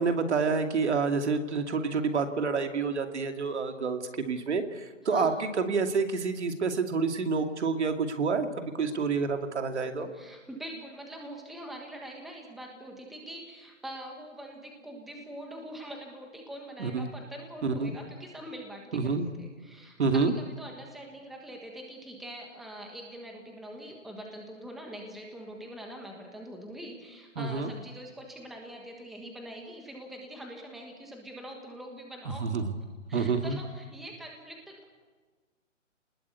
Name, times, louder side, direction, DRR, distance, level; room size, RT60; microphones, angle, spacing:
voice 1, 0.0-10.1 16.8-17.1 17.6-17.9 18.9-19.3 20.0-20.3 27.4-27.7 32.4-32.7 33.1-33.6, right 4 dB, 60° right, 6 dB, 2.6 m, -28 dB
voice 2, 5.0-5.4 10.0-32.5 33.1-34.9, right 1 dB, ahead, 1 dB, 1.4 m, -44 dB
29.5 x 20.0 x 8.3 m, 1.4 s
hypercardioid pair, 165°, 38 cm